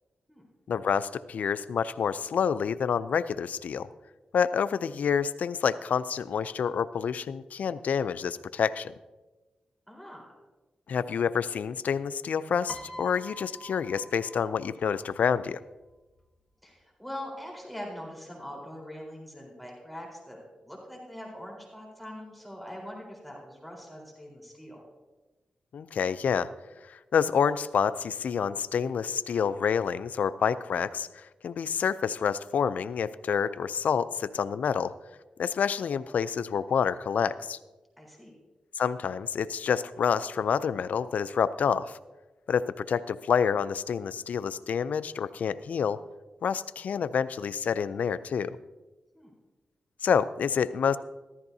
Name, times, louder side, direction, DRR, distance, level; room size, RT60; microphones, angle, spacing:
voice 1, 0.7-3.9 4.3-8.9 10.9-15.6 25.7-26.5 26.9-34.9 35.4-37.6 38.8-42.0 42.5-46.0 46.4-48.6 50.0-51.0, left 7 dB, 80° left, 15 dB, 0.4 m, -28 dB
voice 2, 9.9-10.4 16.6-24.8 38.0-38.3 49.1-49.3, left 1 dB, ahead, -1 dB, 4.1 m, -43 dB
Piano, 12.7-15.0 16.1-16.3, equal, 15° left, 1.4 m, -45 dB
14.5 x 13.5 x 2.7 m, 1.2 s
cardioid pair, 60°, 3 cm